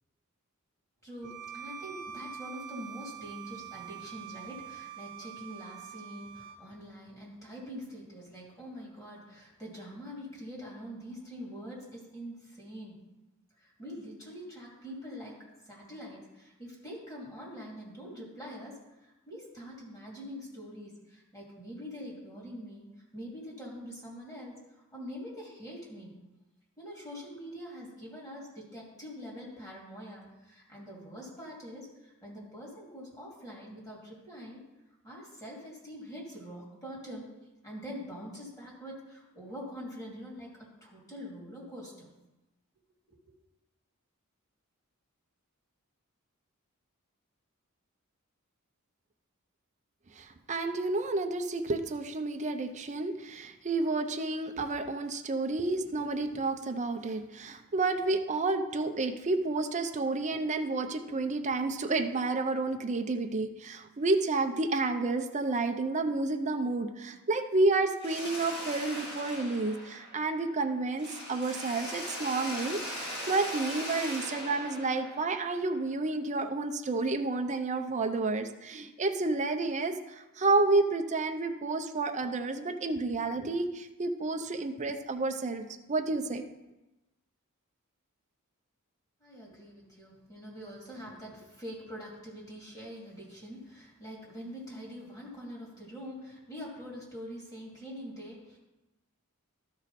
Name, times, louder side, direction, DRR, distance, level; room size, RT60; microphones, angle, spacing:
voice 1, 1.0-13.0 13.6-15.4 15.6-24.6 24.9-26.1 26.8-34.6 35.0-37.3 37.6-40.5 40.8-42.1 43.1-43.3 89.2-98.6, equal, 15° left, -4 dB, 2.6 m, -44 dB
Bowed string instrument, 1.2-6.6, right 9 dB, 80° right, 1.0 m, -45 dB
voice 2, 50.2-86.4, right 3 dB, 35° right, 6 dB, 0.6 m, -30 dB
Mechanisms, 68.0-70.6 71.0-75.8, equal, 50° left, 2.6 m, -40 dB
13.0 x 4.8 x 4.2 m, 1.0 s
head